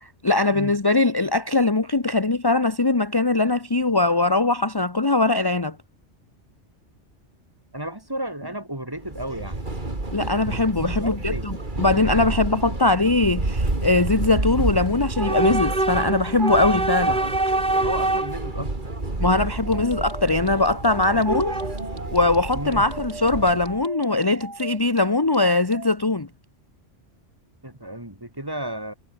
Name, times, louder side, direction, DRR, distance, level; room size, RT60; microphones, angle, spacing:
voice 1, 0.0-5.8 10.1-17.5 19.2-21.5 22.1-26.3, left 2 dB, 20° left, 1.1 m, -21 dB
voice 2, 7.7-9.6 11.0-11.5 17.7-19.4 19.7-19.8 21.1-21.2 22.5-22.8 27.6-28.9, right 1 dB, 20° right, 2.8 m, -33 dB
Train / Subway metro underground, 9.0-23.8, right 2 dB, 45° right, 3.5 m, -27 dB
sound 1, 19.6-25.9, right 2 dB, 90° right, 4.8 m, -39 dB
omnidirectional pair, 1.2 m